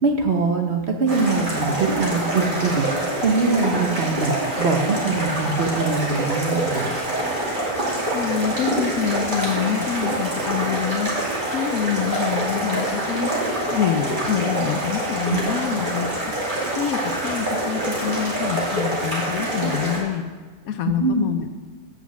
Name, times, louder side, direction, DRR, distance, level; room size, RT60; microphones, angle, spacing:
voice 1, 0.0-6.9 15.3-15.4 21.0-21.3, right 4 dB, 50° right, 3 dB, 1.0 m, -23 dB
sound 1, 1.1-20.0, right 1 dB, 30° right, 2.5 m, -25 dB
voice 2, 8.1-11.1 11.5-13.3 13.7-16.1 16.8-20.3 20.6-21.5, left 9 dB, 70° left, 9 dB, 0.9 m, -26 dB
8.6 x 5.8 x 7.0 m, 1.4 s
omnidirectional pair, 1.7 m